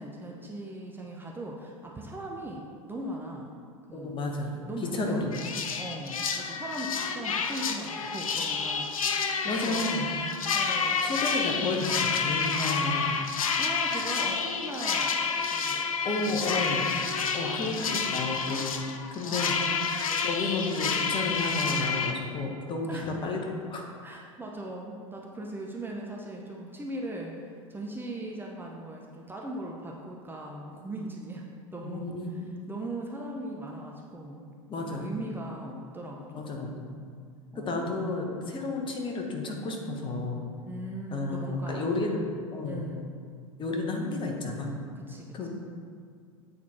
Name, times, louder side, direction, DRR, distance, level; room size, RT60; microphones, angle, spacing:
voice 1, 0.0-3.5 3.9-4.1 4.7-5.2 5.8-10.2 10.5-11.1 13.6-15.2 15.5-15.9 16.2-16.8 17.4-18.2 19.2-19.9 22.9-23.2 24.0-31.5 31.7-34.5 34.8-36.6 37.5-37.9 40.6-41.9 42.6-43.1 45.1-45.5, right 1 dB, 10° right, -1 dB, 0.7 m, -39 dB
voice 2, 3.9-4.6 4.9-5.3 9.5-10.2 11.0-13.2 16.0-16.9 17.3-18.8 19.1-19.6 20.1-23.4 23.7-23.8 31.8-32.5 34.7-35.1 36.3-37.0 37.6-40.4 41.1-42.2 42.5-42.9 43.6-44.8 45.3-45.5, left 2 dB, 30° left, 1 dB, 1.1 m, -32 dB
sound 1, 5.3-22.1, left 5 dB, 80° left, 0.6 m, -29 dB
8.3 x 4.2 x 4.3 m, 2.2 s
hypercardioid pair, 85°, 17 cm